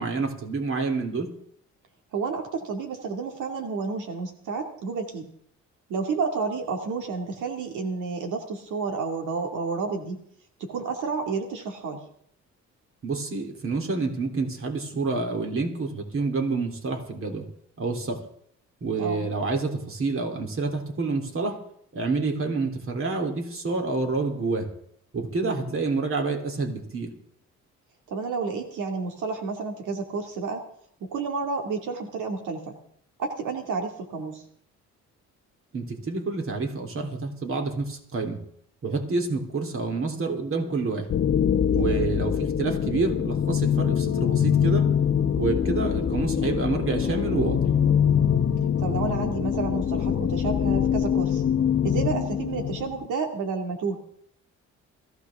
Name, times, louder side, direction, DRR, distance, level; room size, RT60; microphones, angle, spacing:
voice 1, 0.0-1.3 13.0-17.5 17.8-18.2 18.8-21.6 21.9-24.7 25.1-27.1 35.7-38.4 38.8-41.1 41.7-44.9 45.4-47.7, right 3 dB, 45° right, 4 dB, 3.3 m, -28 dB
voice 2, 2.1-5.3 5.9-10.2 10.6-12.0 19.0-19.3 25.4-25.6 28.1-30.6 31.0-32.8 33.2-34.4 41.8-42.1 48.8-51.4 51.8-54.0, right 4 dB, 80° right, 3 dB, 2.3 m, -30 dB
sound 1, 41.1-53.1, left 8 dB, 45° left, 0.9 m, -24 dB
21.0 x 15.5 x 3.6 m, 0.67 s
cardioid pair, 90°, 30 cm